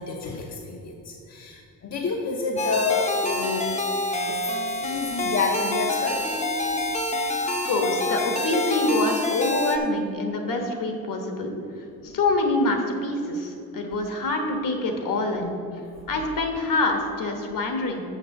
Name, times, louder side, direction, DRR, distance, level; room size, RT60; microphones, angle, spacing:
voice 1, 0.0-3.8 4.3-4.5 4.7-6.2 6.7-6.8 12.1-12.2, left 4 dB, 50° left, 0 dB, 0.8 m, -29 dB
sound 1, 2.6-9.8, left 1 dB, 20° left, 0.7 m, -27 dB
voice 2, 7.4-11.5 12.0-15.6 16.1-18.0, left 2 dB, 70° left, 4 dB, 1.3 m, -26 dB
6.6 x 6.1 x 6.7 m, 2.6 s
wide cardioid pair, 135°, 33 cm